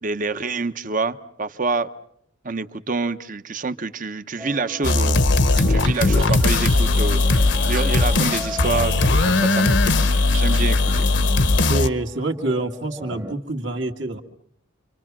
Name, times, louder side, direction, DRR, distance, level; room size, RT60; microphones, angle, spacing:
voice 1, 0.0-1.9 2.4-5.2 5.6-9.9 10.4-11.1, right 3 dB, 40° right, 11 dB, 0.9 m, -27 dB
sound 1, 4.4-13.3, right 1 dB, 15° right, 1.1 m, -39 dB
sound 2, 4.8-11.9, left 2 dB, 60° left, 1.0 m, -18 dB
Toilet flush / Trickle dribble, 5.5-11.0, right 6 dB, 85° right, 1.2 m, -39 dB
voice 2, 11.7-14.2, right 2 dB, 65° right, 4 dB, 2.2 m, -26 dB
29.5 x 25.0 x 6.1 m, 0.70 s
head